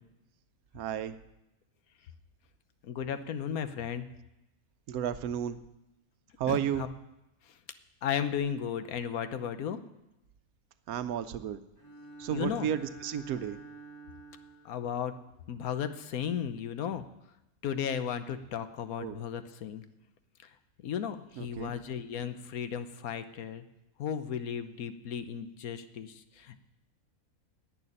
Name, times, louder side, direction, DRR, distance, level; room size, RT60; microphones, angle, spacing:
voice 1, 0.7-1.1 4.9-5.6 6.4-6.9 10.9-11.6 12.2-13.6 19.0-19.2 21.4-21.7, right 9 dB, 80° right, 10 dB, 1.2 m, -32 dB
voice 2, 2.8-4.1 6.5-6.9 8.0-9.8 12.3-12.7 14.6-15.1 15.5-17.0 17.6-19.8 20.8-23.6 24.0-26.6, left 8 dB, 80° left, 11 dB, 1.3 m, -35 dB
Bowed string instrument, 11.8-14.9, right 4 dB, 10° left, 2.0 m, -48 dB
11.0 x 8.6 x 9.9 m, 0.92 s
omnidirectional pair, 1.5 m